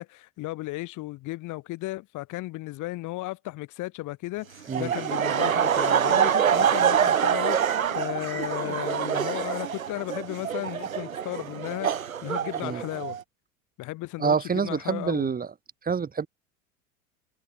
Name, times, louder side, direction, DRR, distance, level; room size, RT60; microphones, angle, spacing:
voice 1, 0.0-13.2 13.8-15.3, left 19 dB, 50° left, 4.6 m, -35 dB
Laughter, 4.7-13.2, right 8 dB, 85° right, 3.2 m, -25 dB
voice 2, 14.2-15.5 15.8-16.3, right 6 dB, 20° right, 4.5 m, -26 dB
hypercardioid pair, 90°, 40 cm